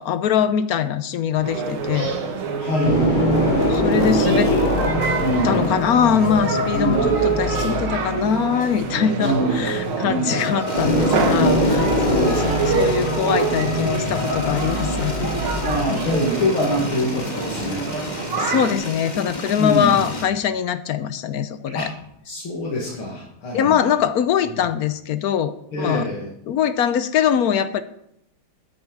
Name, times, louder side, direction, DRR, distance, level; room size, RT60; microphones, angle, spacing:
voice 1, 0.0-2.1 3.7-4.5 5.4-15.6 15.9-16.1 18.4-21.9 23.5-26.1 26.5-27.8, left 8 dB, 65° left, 12 dB, 0.9 m, -22 dB
sound 1, 1.4-2.2 2.7-17.3, equal, 45° left, 3.2 m, -24 dB
sound 2, 1.4-18.7, right 5 dB, 80° right, 2.2 m, -26 dB
voice 2, 2.6-3.5 4.2-4.8 5.2-5.7 6.7-7.3 9.2-9.7 10.0-10.5 12.1-12.6 15.6-17.9 19.6-20.0 21.7-21.9 22.2-23.8 25.7-26.3, left 1 dB, 85° left, -3 dB, 2.9 m, -25 dB
sound 3, 10.7-20.2, left 1 dB, 20° left, 1.6 m, -33 dB
9.3 x 8.9 x 7.3 m, 0.78 s
omnidirectional pair, 2.3 m